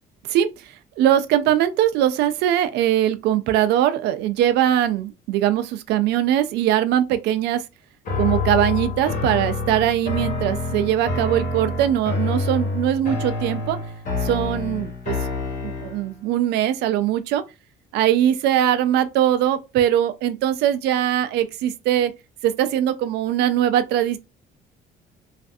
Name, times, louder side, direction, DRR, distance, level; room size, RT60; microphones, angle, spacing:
voice 1, 0.3-7.6 8.2-13.8 14.2-15.2 15.6-17.4 17.9-22.1 22.4-24.2, right 11 dB, 80° right, 0.4 m, -21 dB
sound 1, 8.0-16.1, left 3 dB, 50° left, 1.2 m, -27 dB
3.1 x 2.5 x 2.6 m
cardioid pair, 110°, 17 cm